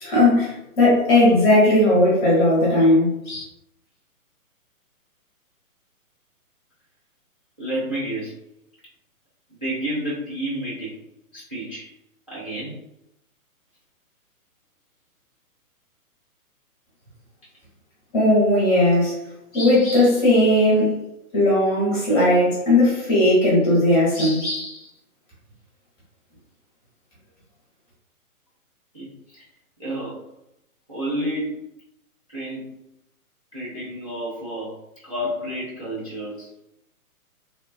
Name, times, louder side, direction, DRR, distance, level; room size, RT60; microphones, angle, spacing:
voice 1, 0.0-3.4 18.1-19.1 19.5-21.0 21.3-24.8, left 1 dB, 15° left, -7 dB, 0.7 m, -17 dB
voice 2, 7.6-8.4 9.5-11.0 11.3-11.9 12.3-12.8 28.9-29.1 29.3-29.5 29.8-30.2 30.9-31.7 32.3-32.8 33.5-34.8 35.0-36.5, right 1 dB, 25° right, -10 dB, 0.3 m, -30 dB
3.0 x 2.1 x 2.5 m, 0.84 s
hypercardioid pair, 150°, 44 cm